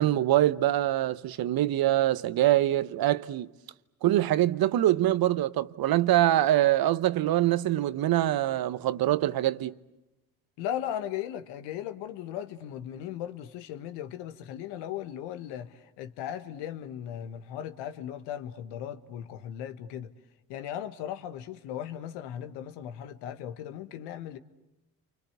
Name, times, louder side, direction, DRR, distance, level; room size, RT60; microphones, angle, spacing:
voice 1, 0.0-3.5 4.0-9.7, right 13 dB, 60° right, 1.0 m, -24 dB
voice 2, 10.6-20.1 20.5-24.4, left 10 dB, 80° left, 1.5 m, -37 dB
29.0 x 25.0 x 8.1 m
supercardioid pair, 70°, 40 cm